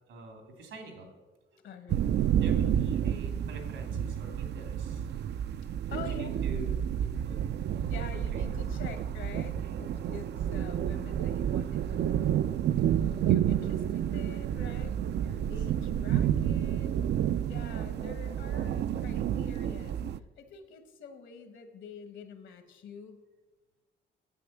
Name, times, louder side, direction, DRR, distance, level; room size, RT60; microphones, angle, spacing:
voice 1, 0.1-1.1 1.5-1.6 2.3-5.1 5.9-7.4 8.0-8.9 9.6-10.1 15.3-15.5, right 2 dB, 85° right, 4 dB, 2.8 m, -46 dB
voice 2, 1.6-2.1 5.9-6.3 7.9-12.4 12.8-16.9 17.5-20.0 20.4-23.2, left 6 dB, 75° left, 8 dB, 1.6 m, -46 dB
sound 1, 1.9-20.2, right 10 dB, 60° right, 0.5 m, -30 dB
9.8 x 8.5 x 7.4 m, 1.2 s
cardioid pair, 90°, 20 cm